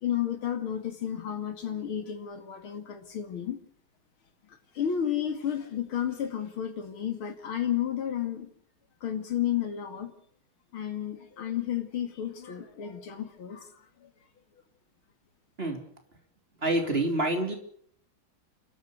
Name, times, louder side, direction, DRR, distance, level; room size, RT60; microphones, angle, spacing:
voice 1, 0.0-3.6 4.7-8.5 9.0-10.1 10.7-13.7 14.0-14.1, left 10 dB, 85° left, 3.0 m, -32 dB
voice 2, 16.6-17.6, right 1 dB, 30° right, 3.6 m, -27 dB
30.0 x 13.5 x 6.6 m
omnidirectional pair, 2.2 m